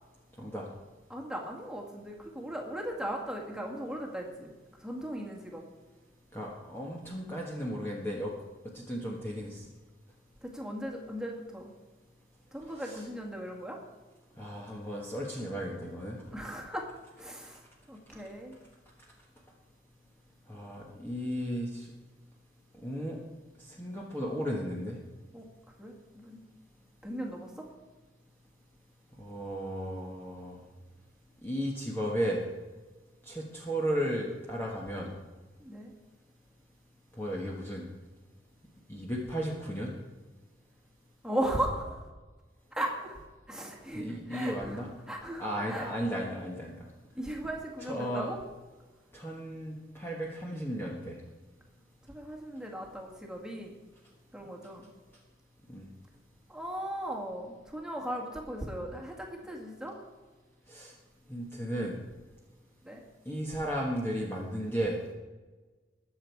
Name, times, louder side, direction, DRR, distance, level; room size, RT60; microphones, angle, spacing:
voice 1, 1.1-4.5 4.8-5.6 10.4-11.7 12.5-13.8 16.3-16.9 17.2-17.6 17.9-18.6 25.3-25.5 25.8-26.4 27.0-27.7 35.6-35.9 41.2-42.1 42.7-43.2 43.5-44.8 45.1-45.9 47.1-48.4 52.1-53.8 54.3-54.9 56.5-60.0 62.8-63.0, right 1 dB, 5° right, -1 dB, 2.0 m, -37 dB
voice 2, 6.3-8.3 8.7-9.7 12.7-13.0 14.4-16.2 20.5-21.9 22.8-23.2 23.6-25.0 29.2-30.6 31.4-32.4 33.2-35.1 37.2-37.8 38.9-39.9 43.9-44.9 45.4-46.7 47.8-48.3 49.1-51.2 55.7-55.9 60.7-60.9 61.3-62.0 63.2-65.0, equal, 10° left, -3 dB, 1.4 m, -34 dB
21.0 x 7.2 x 4.7 m, 1.3 s
head